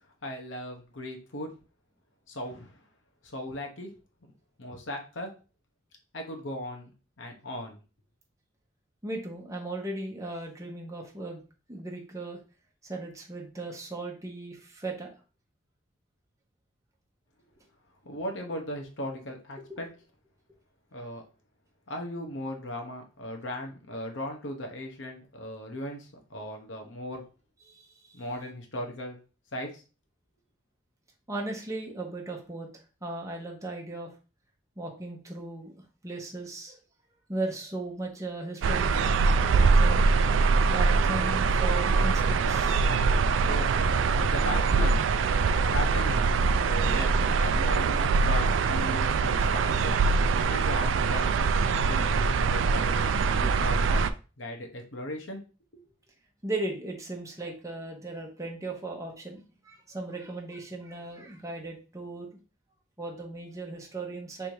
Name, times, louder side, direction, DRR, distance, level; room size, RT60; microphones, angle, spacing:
voice 1, 0.2-1.5 2.3-2.7 3.2-3.9 4.6-5.3 6.1-6.9 7.2-7.8 18.0-19.9 20.9-21.2 21.9-27.2 28.1-29.2 29.5-29.8 43.5-43.7 44.3-45.1 45.7-46.3 46.6-50.0 50.5-51.3 51.6-54.1 54.4-55.4 55.7-55.8, left 1 dB, 85° left, 3 dB, 1.0 m, -37 dB
voice 2, 9.0-11.4 11.7-12.4 12.8-15.1 19.7-19.8 27.7-27.8 31.3-32.7 33.0-34.1 34.8-35.7 36.0-36.8 37.3-40.2 40.7-42.8 50.4-50.6 56.4-62.3 63.0-64.5, right 2 dB, 15° right, 0 dB, 1.0 m, -37 dB
sound 1, 38.6-54.1, right 4 dB, 75° right, 0.3 m, -23 dB
3.4 x 2.7 x 4.6 m, 0.34 s
head